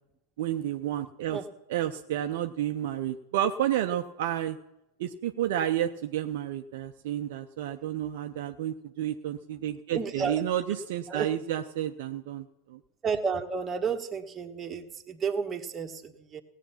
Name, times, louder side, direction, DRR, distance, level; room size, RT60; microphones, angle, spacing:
voice 1, 0.4-1.4 1.7-4.6 5.0-12.8, right 11 dB, 55° right, 6 dB, 0.6 m, -31 dB
voice 2, 9.9-10.4 11.1-11.3 13.0-16.4, right 5 dB, 20° right, 3 dB, 1.4 m, -32 dB
17.5 x 8.1 x 5.8 m, 0.91 s
figure-of-eight pair, 90°, 0 cm